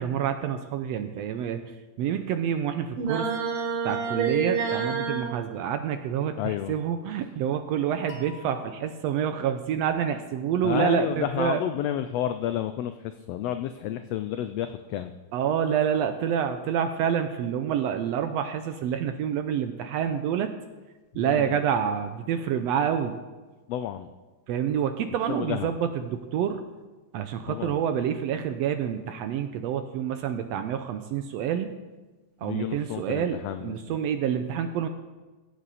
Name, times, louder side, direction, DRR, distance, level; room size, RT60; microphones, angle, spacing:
voice 1, 0.0-1.7 2.0-3.3 3.8-11.6 15.3-20.5 21.1-23.2 24.5-26.6 27.1-31.7 32.4-34.9, right 8 dB, 80° right, 8 dB, 1.6 m, -28 dB
sound 1, 3.0-5.3, right 6 dB, 60° right, 1.8 m, -28 dB
voice 2, 6.4-6.7 10.6-15.1 21.1-21.6 23.7-24.1 25.3-25.7 27.5-27.8 32.4-33.9, left 11 dB, 85° left, 9 dB, 1.4 m, -31 dB
sound 2, 8.1-11.0, left 4 dB, 70° left, 2.7 m, -49 dB
16.0 x 8.1 x 4.1 m, 1.2 s
omnidirectional pair, 3.3 m